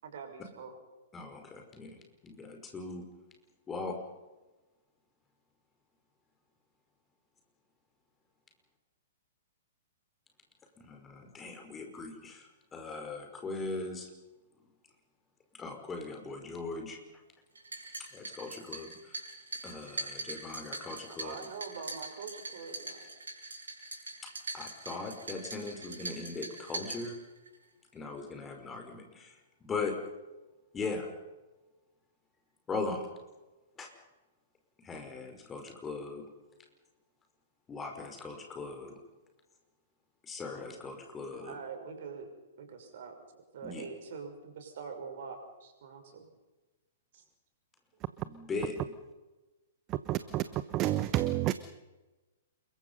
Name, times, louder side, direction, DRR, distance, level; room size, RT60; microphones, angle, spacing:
voice 1, 0.0-0.8 21.2-23.1 41.3-42.3 42.6-46.3 47.1-47.2, right 5 dB, 50° right, 6.2 m, -44 dB
voice 2, 1.1-3.0 3.7-4.0 10.8-12.5 12.7-14.1 15.6-17.0 18.1-19.0 19.6-21.3 24.5-27.2 27.9-29.3 29.6-30.0 30.7-31.1 32.7-33.1 33.8-33.9 34.8-36.2 37.7-38.9 40.3-41.5 43.6-43.8 48.2-48.7, left 3 dB, 15° left, 5.3 m, -39 dB
sound 1, 17.6-27.5, right 2 dB, 75° right, 7.2 m, -42 dB
voice 3, 50.1-51.5, right 14 dB, 30° right, 1.0 m, -30 dB
28.0 x 23.0 x 5.6 m
figure-of-eight pair, 110°, 0 cm